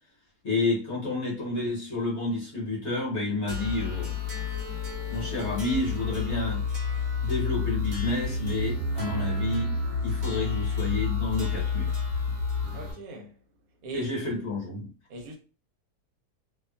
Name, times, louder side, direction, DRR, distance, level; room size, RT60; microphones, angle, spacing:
voice 1, 0.4-4.1 5.1-6.6 7.2-9.7 10.0-11.9 13.9-14.9, left 2 dB, 50° left, 1.1 m, -30 dB
sound 1, 3.5-12.9, left 4 dB, 50° right, 0.8 m, -30 dB
voice 2, 12.7-13.4 13.8-14.1 15.1-15.4, right 3 dB, 75° right, 1.0 m, -40 dB
2.6 x 2.2 x 2.2 m
omnidirectional pair, 1.6 m